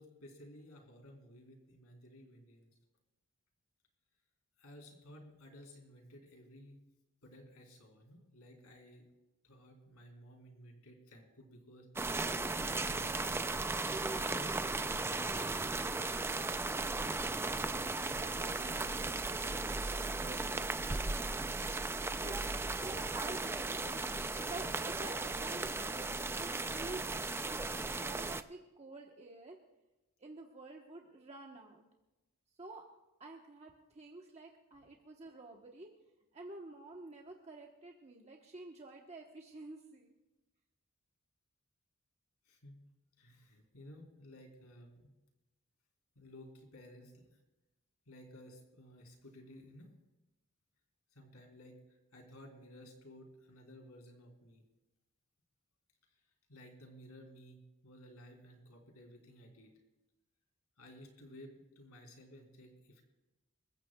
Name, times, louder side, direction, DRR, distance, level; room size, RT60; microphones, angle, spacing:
voice 1, 0.0-2.7 4.6-6.8 7.2-9.1 9.4-11.9 12.5-13.8 14.1-16.4 42.4-42.9 43.2-45.1 46.1-47.4 48.1-49.9 51.1-54.6 56.5-59.7 60.8-63.0, equal, 85° left, 2 dB, 3.5 m, -55 dB
sound 1, 12.0-28.4, right 3 dB, 10° right, 0.4 m, -36 dB
voice 2, 18.2-21.6 22.2-24.0 24.3-27.4 28.0-29.6 30.2-31.9 32.6-32.9 33.2-35.9 36.3-40.2, right 2 dB, 30° right, 0 dB, 1.1 m, -50 dB
28.0 x 15.0 x 2.3 m, 1.0 s
head